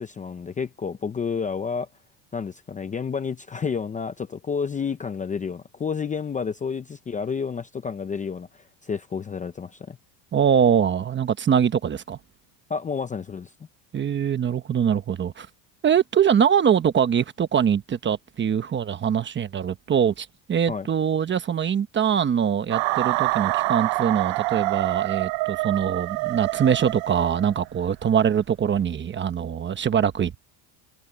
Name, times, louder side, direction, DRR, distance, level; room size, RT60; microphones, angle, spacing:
voice 1, 0.0-1.9 2.3-10.0 12.7-13.5 20.7-20.9, left 6 dB, 15° left, 0.7 m, -30 dB
voice 2, 10.3-12.2 13.9-15.5 15.8-30.4, right 8 dB, 25° right, 1.0 m, -23 dB
sound 1, 22.7-27.7, right 23 dB, 65° right, 0.9 m, -26 dB
cardioid pair, 140°, 49 cm